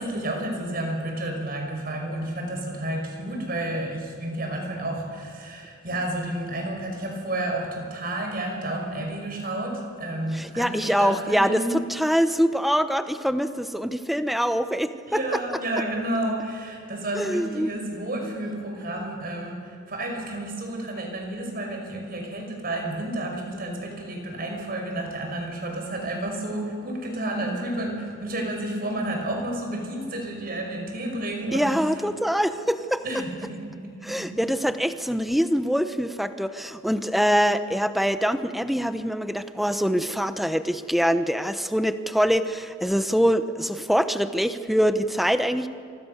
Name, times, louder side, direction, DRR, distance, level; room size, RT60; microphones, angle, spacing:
voice 1, 0.0-11.8 15.1-31.9 33.0-34.4, right 1 dB, 45° right, 2 dB, 5.5 m, -31 dB
voice 2, 10.3-15.2 17.1-17.7 31.5-33.0 34.0-45.7, equal, ahead, 10 dB, 0.9 m, -24 dB
29.0 x 25.5 x 6.7 m, 2.4 s
head